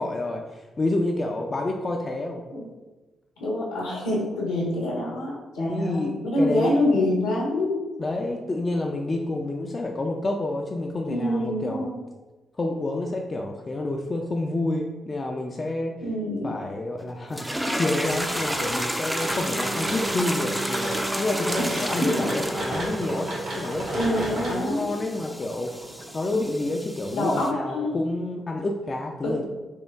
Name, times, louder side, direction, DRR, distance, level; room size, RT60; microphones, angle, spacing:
voice 1, 0.0-2.4 5.6-6.8 8.0-11.8 12.6-15.9 16.4-25.7 26.1-29.5, left 2 dB, 40° left, 1 dB, 0.5 m, -28 dB
voice 2, 3.4-7.8 11.1-11.9 16.0-16.5 21.6-22.3 23.9-24.9 27.1-27.9 29.2-29.5, left 1 dB, 85° left, -4 dB, 1.2 m, -26 dB
sound 1, 17.3-27.5, equal, 5° right, 0.5 m, -32 dB
sound 2, 17.9-26.6, right 1 dB, 75° right, 1.2 m, -35 dB
Wind instrument woodwind instrument, 19.0-23.6, right 2 dB, 45° right, 1.1 m, -35 dB
4.5 x 2.2 x 3.3 m, 1.2 s
hypercardioid pair, 40°, 0 cm